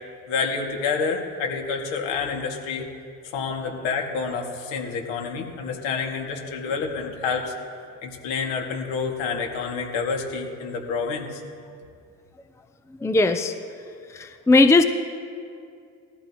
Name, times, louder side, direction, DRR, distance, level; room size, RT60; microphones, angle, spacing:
voice 1, 0.3-2.8 3.3-7.5 8.0-11.4, left 5 dB, 65° left, 1 dB, 2.5 m, -28 dB
voice 2, 13.0-13.5 14.1-14.8, left 2 dB, 5° left, 8 dB, 0.7 m, -18 dB
20.0 x 14.0 x 3.1 m, 2.4 s
hypercardioid pair, 70°, 48 cm